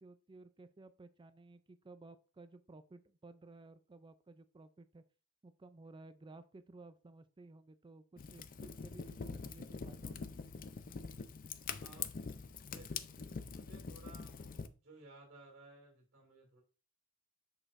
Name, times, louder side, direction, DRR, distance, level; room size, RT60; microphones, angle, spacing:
voice 1, 0.0-5.0 5.4-10.3, right 2 dB, 20° right, 12 dB, 0.4 m, -56 dB
Fire, 8.2-14.7, left 5 dB, 40° left, 0.5 m, -44 dB
voice 2, 11.8-12.1 12.7-14.3 14.8-16.6, right 2 dB, 50° right, -1 dB, 2.3 m, -58 dB
7.4 x 6.3 x 2.5 m, 0.35 s
head